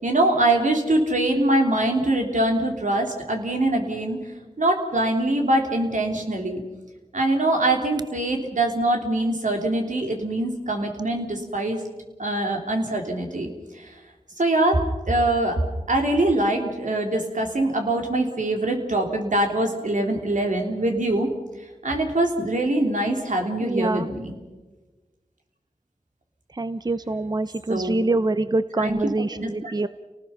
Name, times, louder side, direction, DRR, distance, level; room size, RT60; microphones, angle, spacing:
voice 1, 0.0-4.2 4.6-6.6 7.1-11.8 12.2-13.5 13.7-13.9 14.4-15.6 15.9-21.3 21.8-24.3 27.7-28.0 28.8-29.5, right 1 dB, 80° right, 2 dB, 3.4 m, -23 dB
voice 2, 23.6-24.1 26.6-29.9, right 2 dB, 30° right, 13 dB, 0.6 m, -25 dB
29.5 x 19.0 x 5.8 m, 1.2 s
wide cardioid pair, 70°, 13 cm